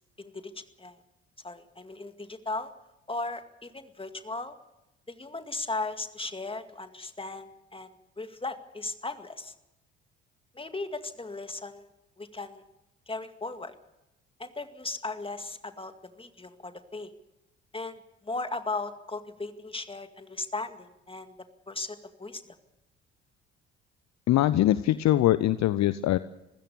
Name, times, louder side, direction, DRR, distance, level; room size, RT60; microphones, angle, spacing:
voice 1, 0.2-1.0 1.4-2.7 3.1-4.6 5.1-9.5 10.6-11.9 12.2-12.6 13.1-13.7 14.4-17.1 17.7-21.3 21.7-22.4, left 3 dB, 15° left, 9 dB, 2.1 m, -37 dB
voice 2, 24.3-26.2, left 14 dB, 50° left, 16 dB, 0.8 m, -22 dB
26.5 x 16.0 x 7.0 m, 0.94 s
figure-of-eight pair, 50°, 36 cm